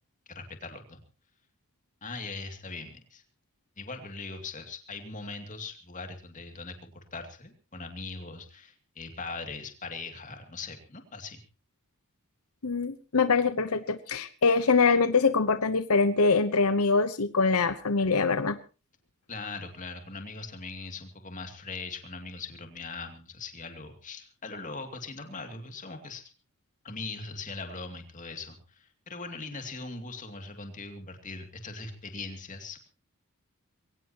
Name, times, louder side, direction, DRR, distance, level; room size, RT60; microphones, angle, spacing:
voice 1, 0.3-1.0 2.0-3.2 3.8-11.4 19.3-26.2 26.8-32.8, left 3 dB, 35° left, 6 dB, 2.6 m, -40 dB
voice 2, 12.6-18.6, left 4 dB, 90° left, 12 dB, 1.0 m, -24 dB
22.5 x 17.5 x 3.0 m, 0.33 s
head